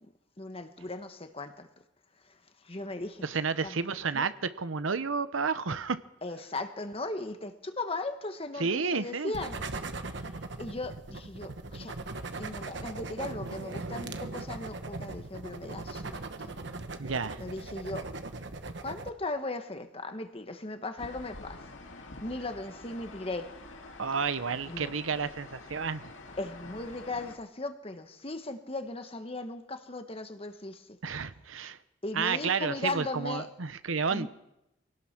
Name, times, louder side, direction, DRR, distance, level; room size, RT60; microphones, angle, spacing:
voice 1, 0.0-1.7 2.2-2.4 2.6-3.2 3.6-3.8 4.1-4.3 6.2-9.6 10.6-12.0 12.4-16.5 17.4-18.1 18.8-21.6 22.2-23.5 24.7-25.0 26.4-31.0 32.0-33.5 34.1-34.3, left 2 dB, 30° left, 1.5 m, -37 dB
voice 2, 3.2-6.0 8.6-9.3 17.0-17.4 24.0-26.1 31.0-31.8 32.1-34.3, right 5 dB, 85° right, 0.9 m, -31 dB
sound 1, 9.3-19.1, right 3 dB, 60° right, 1.3 m, -39 dB
sound 2, 21.0-27.4, left 2 dB, 75° left, 2.4 m, -47 dB
24.0 x 18.0 x 6.1 m
head